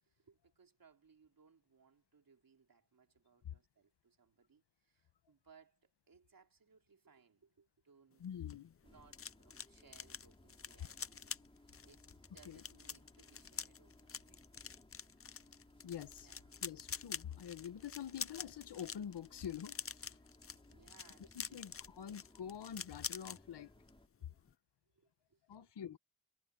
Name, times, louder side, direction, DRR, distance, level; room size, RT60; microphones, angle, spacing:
voice 1, 0.0-8.2 8.8-11.3 11.8-12.1 12.3-14.4 16.2-16.6 20.7-22.0 24.2-24.4 24.9-26.0, right 5 dB, 55° right, 3.6 m, -67 dB
voice 2, 8.2-8.8 12.4-12.6 15.8-16.3 16.6-20.2 21.2-23.7 25.5-26.0, left 9 dB, 75° left, 1.3 m, -46 dB
sound 1, 8.2-23.4 23.7-24.0 24.3-24.5, left 6 dB, 35° left, 0.6 m, -47 dB
sound 2, 8.8-24.1, left 1 dB, 15° left, 6.5 m, -64 dB
cardioid pair, 80°, 41 cm